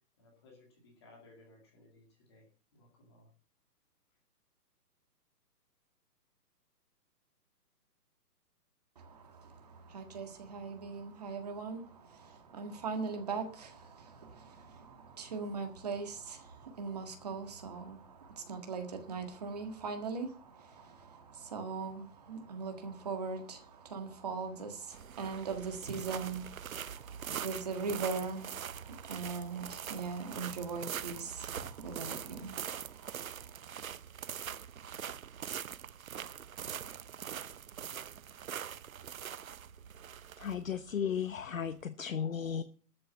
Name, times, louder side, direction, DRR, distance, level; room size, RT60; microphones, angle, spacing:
voice 1, 0.2-2.5 2.7-3.3, left 2 dB, 15° left, 0 dB, 2.3 m, -60 dB
voice 2, 8.9-33.6, right 4 dB, 25° right, 5 dB, 1.7 m, -40 dB
sound 1, 24.9-41.8, right 8 dB, 60° right, 0.6 m, -43 dB
voice 3, 40.4-42.6, left 7 dB, 55° left, 10 dB, 1.0 m, -35 dB
13.0 x 7.9 x 7.0 m, 0.39 s
hypercardioid pair, 180°, 48 cm